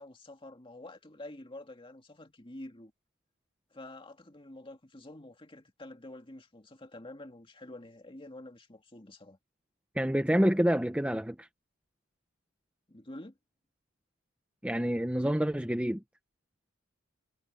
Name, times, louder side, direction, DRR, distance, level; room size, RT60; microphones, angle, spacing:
voice 1, 0.0-2.9 3.7-9.4 12.9-13.4, left 1 dB, 25° left, 2.2 m, -48 dB
voice 2, 10.0-11.5 14.6-16.0, equal, 5° right, 0.8 m, -27 dB
head